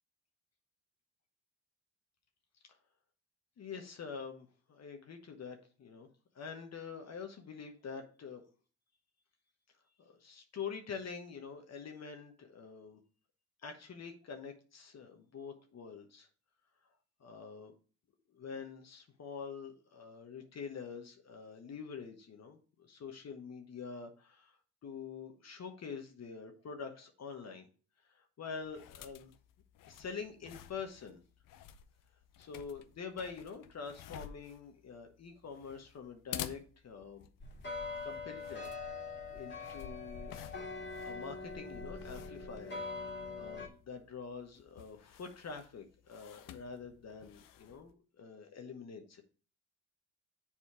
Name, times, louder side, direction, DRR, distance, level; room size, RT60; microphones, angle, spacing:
voice 1, 3.6-6.1 6.3-8.4 10.0-13.0 13.6-16.3 17.2-17.7 18.3-24.6 24.8-27.7 28.0-29.3 29.9-31.2 32.4-37.3 38.0-38.7 39.3-40.3 41.0-49.2, left 5 dB, 50° left, 4 dB, 1.1 m, -46 dB
sound 1, 28.6-47.9, left 11 dB, 70° left, 0.7 m, -52 dB
sound 2, 37.4-43.7, left 3 dB, 35° left, 2.0 m, -43 dB
7.3 x 4.3 x 4.8 m, 0.38 s
supercardioid pair, 60°, 34 cm